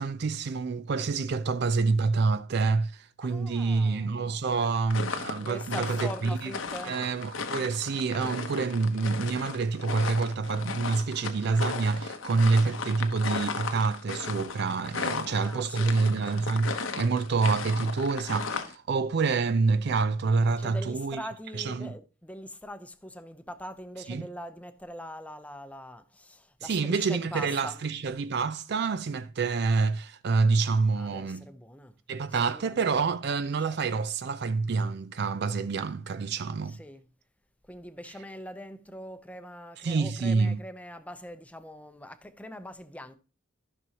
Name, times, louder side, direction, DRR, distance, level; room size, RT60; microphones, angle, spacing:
voice 1, 0.0-6.5 6.8-21.2 21.6-21.9 24.1-24.2 26.6-31.4 32.1-36.8 39.8-40.6, right 4 dB, 55° right, 0.4 m, -27 dB
voice 2, 3.2-4.2 5.3-7.0 15.0-16.0 20.6-27.9 31.0-32.8 33.6-33.8 36.6-37.1 37.6-43.1, equal, 5° left, 0.7 m, -43 dB
sound 1, 4.9-18.8, left 4 dB, 85° left, 1.0 m, -36 dB
14.0 x 6.1 x 2.9 m
head